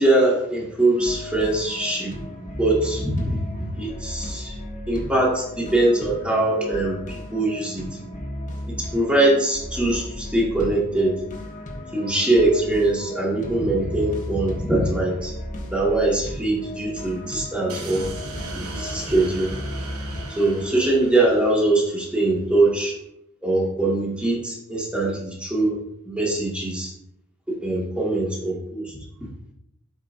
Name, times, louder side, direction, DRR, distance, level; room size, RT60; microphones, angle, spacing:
voice 1, 0.0-2.1 2.6-3.4 3.8-4.6 4.9-7.9 8.7-11.1 11.9-15.3 15.7-18.1 18.5-19.5 20.4-23.0 23.4-25.8 26.1-26.9 27.6-29.0, right 2 dB, 5° right, -4 dB, 1.9 m, -22 dB
sound 1, 0.9-20.8, left 1 dB, 35° left, 1.4 m, -35 dB
sound 2, 17.7-22.1, right 2 dB, 75° right, 1.1 m, -36 dB
12.5 x 5.3 x 2.6 m, 0.80 s
head